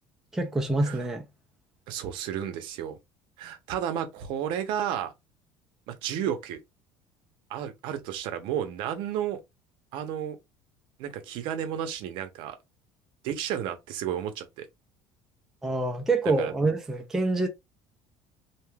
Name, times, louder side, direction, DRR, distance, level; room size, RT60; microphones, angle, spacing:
voice 1, 0.3-1.3 15.6-17.5, right 2 dB, 5° right, 0.3 m, -26 dB
voice 2, 1.9-3.0 3.4-5.1 5.9-6.6 7.5-9.4 9.9-10.4 11.0-12.6 13.2-14.7 16.4-16.5, right 10 dB, 60° right, 0.6 m, -32 dB
2.7 x 2.2 x 3.2 m
cardioid pair, 170°, 10 cm